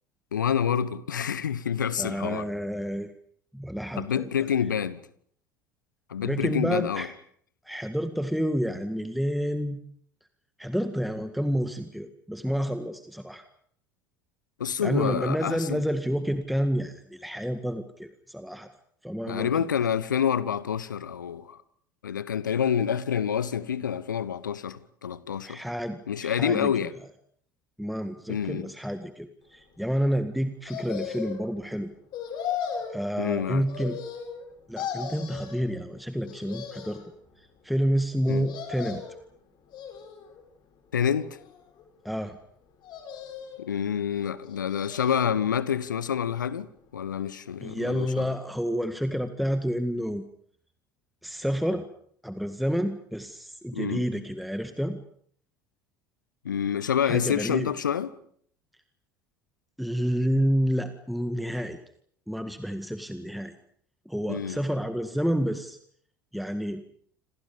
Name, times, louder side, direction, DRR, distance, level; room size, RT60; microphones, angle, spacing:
voice 1, 0.3-2.5 4.0-5.0 6.1-7.1 14.6-15.8 19.3-21.6 22.0-25.6 26.1-26.9 28.3-28.7 33.2-33.6 38.3-38.5 40.9-41.3 43.6-46.7 46.9-48.3 53.7-54.0 56.4-58.1 64.3-64.6, left 8 dB, 80° left, 1.2 m, -27 dB
voice 2, 2.0-3.1 3.5-4.3 6.2-7.1 7.7-9.8 10.6-13.4 14.8-18.7 19.0-19.7 25.4-26.7 27.8-31.9 32.9-34.0 34.7-37.0 37.4-39.0 42.0-42.4 47.6-50.2 51.2-51.9 52.2-55.0 57.0-57.7 59.8-61.8 62.3-63.5 64.1-65.8 66.3-66.9, equal, ahead, 1.9 m, -29 dB
sound 1, 30.7-31.5 32.1-32.9 33.7-34.5 34.8-35.6 36.2-37.1 38.2-39.2 39.7-40.4 41.0-41.8 42.8-43.7 44.4-45.3 45.7-45.8, left 8 dB, 45° left, 7.7 m, -37 dB
28.5 x 27.0 x 5.3 m
figure-of-eight pair, 65°, 10 cm